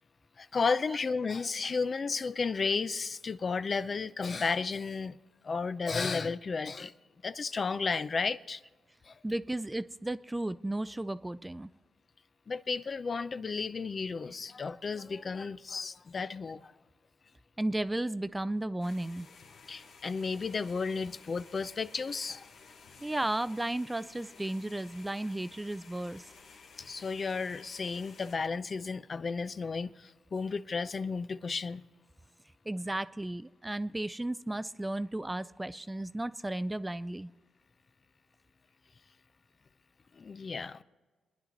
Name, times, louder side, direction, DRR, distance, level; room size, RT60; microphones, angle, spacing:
voice 1, 0.4-5.2 5.4-6.9 7.2-8.6 9.0-9.2 12.5-16.7 19.7-22.4 26.8-31.8 40.1-40.8, left 4 dB, 45° left, 0.5 m, -33 dB
voice 2, 9.2-11.7 17.6-19.3 23.0-26.2 32.7-37.3, right 1 dB, 15° right, 0.4 m, -34 dB
sound 1, 18.8-28.4, left 5 dB, 65° left, 1.1 m, -55 dB
25.0 x 10.0 x 4.0 m
cardioid pair, 70°, 0 cm